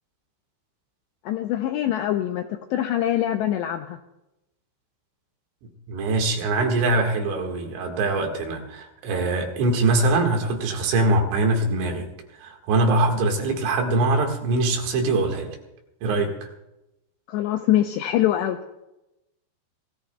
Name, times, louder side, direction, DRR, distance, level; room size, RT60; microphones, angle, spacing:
voice 1, 1.3-4.0 17.3-18.6, left 12 dB, 85° left, 5 dB, 2.5 m, -24 dB
voice 2, 5.9-12.1 12.4-15.6 16.0-16.3, right 2 dB, 70° right, 2 dB, 4.0 m, -23 dB
26.5 x 17.5 x 2.3 m, 0.93 s
omnidirectional pair, 5.7 m